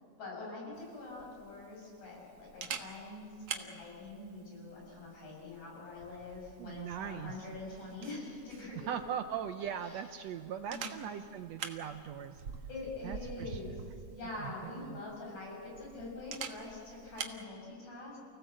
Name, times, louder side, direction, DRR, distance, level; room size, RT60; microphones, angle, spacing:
voice 1, 0.2-9.0 9.8-10.1 10.7-11.1 12.7-18.2, left 2 dB, 65° left, -3 dB, 8.2 m, -45 dB
Camera, 0.7-17.4, right 6 dB, 55° right, 1.9 m, -47 dB
voice 2, 6.6-7.4 8.9-12.4 13.0-13.6 14.4-14.5 14.9-15.0, right 8 dB, 75° right, 8 dB, 1.7 m, -39 dB
29.5 x 17.0 x 7.9 m, 2.4 s
omnidirectional pair, 3.5 m